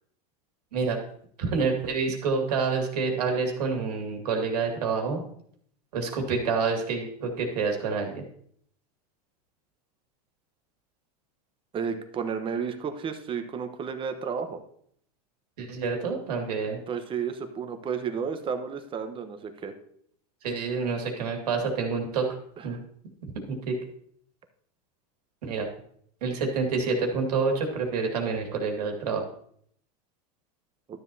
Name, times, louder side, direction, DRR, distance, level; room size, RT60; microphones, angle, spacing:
voice 1, 1.4-5.2 5.9-8.2 15.6-16.8 20.4-22.3 22.6-22.8 23.2-23.7 25.4-25.7 26.2-29.2, right 4 dB, 90° right, 2 dB, 2.3 m, -28 dB
voice 2, 11.7-14.6 16.9-19.7 22.6-22.8, right 6 dB, 25° right, 8 dB, 1.0 m, -32 dB
12.0 x 7.3 x 2.8 m, 0.64 s
supercardioid pair, 125°, 20 cm